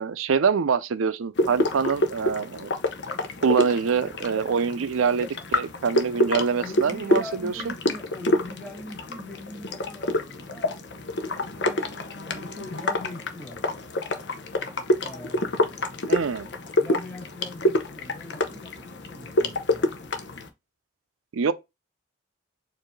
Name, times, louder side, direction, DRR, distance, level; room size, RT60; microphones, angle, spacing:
voice 1, 0.0-2.7 3.4-7.7 16.1-16.5 21.3-21.5, right 6 dB, 90° right, 0.5 m, -25 dB
sound 1, 1.4-20.5, left 1 dB, 60° left, 0.7 m, -28 dB
voice 2, 6.6-10.8 11.4-13.6 15.0-15.8 16.7-19.9, left 1 dB, 10° left, 2.1 m, -41 dB
4.5 x 2.7 x 3.1 m
head